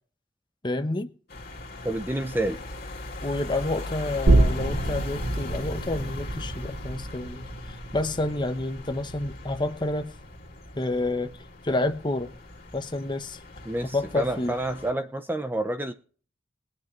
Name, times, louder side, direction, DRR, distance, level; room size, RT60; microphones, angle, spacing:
voice 1, 0.6-1.1 3.2-10.1 10.8-11.3 11.6-12.3 12.7-13.4 13.9-14.6, left 2 dB, 25° left, 0.9 m, -29 dB
sound 1, 1.3-14.9, left 2 dB, 55° left, 2.6 m, -39 dB
voice 2, 1.8-2.6 13.7-15.9, right 1 dB, 10° right, 0.8 m, -29 dB
sound 2, 4.3-11.5 11.9-12.0, right 2 dB, 85° right, 1.2 m, -28 dB
21.5 x 8.9 x 3.2 m
head